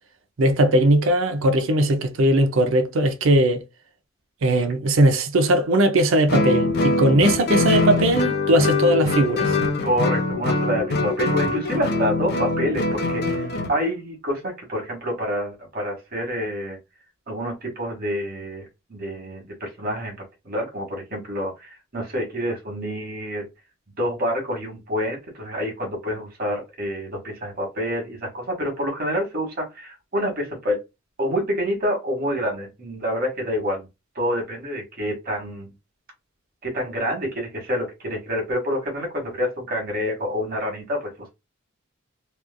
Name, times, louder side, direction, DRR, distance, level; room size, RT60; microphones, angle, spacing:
voice 1, 0.4-3.6 4.4-9.6, right 1 dB, 70° right, 0.5 m, -19 dB
Guitar, 6.3-13.8, left 3 dB, 50° left, 0.6 m, -23 dB
voice 2, 9.8-16.8 17.3-20.2 20.4-23.5 24.0-30.8 31.2-33.9 34.1-35.7 36.6-41.3, equal, 50° right, 1.3 m, -27 dB
3.0 x 2.4 x 2.3 m
head